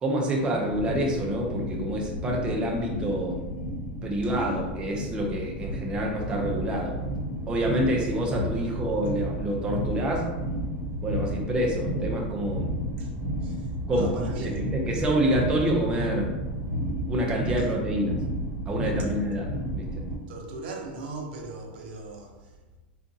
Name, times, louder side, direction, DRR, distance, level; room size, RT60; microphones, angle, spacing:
voice 1, 0.0-3.4 4.0-7.0 7.5-10.3 11.0-12.7 13.9-16.3 17.1-18.2 18.7-19.8, right 1 dB, 15° right, 0.5 m, -27 dB
sound 1, 0.6-20.1, right 1 dB, 40° right, 1.0 m, -32 dB
voice 2, 13.4-14.6 17.6-17.7 20.3-22.6, right 3 dB, 65° right, 0.7 m, -39 dB
3.7 x 2.4 x 2.6 m
supercardioid pair, 135°, 6 cm